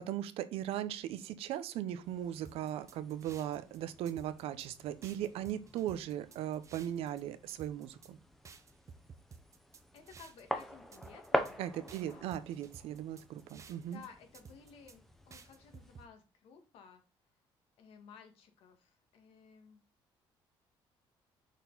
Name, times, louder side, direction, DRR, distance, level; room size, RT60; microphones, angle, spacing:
voice 1, 0.0-8.2 11.6-14.0, right 11 dB, 85° right, 0.7 m, -38 dB
sound 1, 2.0-16.1, equal, 5° left, 0.8 m, -44 dB
sound 2, 2.4-3.8 4.1-4.7 5.0-7.2 7.5-8.1 8.4-10.6 10.9-11.5 11.9-14.1 14.3-15.0 15.3-16.1, right 5 dB, 35° right, 0.7 m, -54 dB
voice 2, 9.9-12.3 13.9-17.0 17.8-19.8, left 6 dB, 80° left, 1.7 m, -56 dB
6.3 x 4.2 x 4.0 m
cardioid pair, 130°, 10 cm